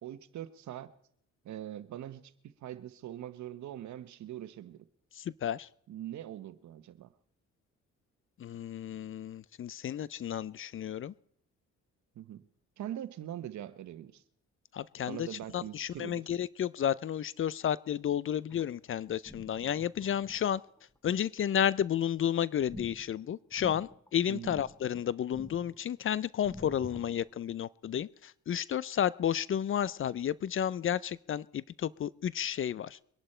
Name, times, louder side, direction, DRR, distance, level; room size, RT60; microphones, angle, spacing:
voice 1, 0.0-0.9 1.4-4.8 5.9-7.1 12.1-12.5 12.8-14.2 15.1-16.3 24.3-24.5, right 11 dB, 70° right, 1.1 m, -42 dB
voice 2, 5.2-5.7 8.4-11.1 14.7-15.3 15.5-20.6 21.0-33.0, left 9 dB, 45° left, 0.5 m, -32 dB
sound 1, 18.5-18.9 19.2-21.0 22.7-24.1 24.4-25.0 25.3-26.0 26.4-27.3, equal, 10° left, 1.2 m, -48 dB
23.5 x 11.5 x 4.4 m
cardioid pair, 90°, 30 cm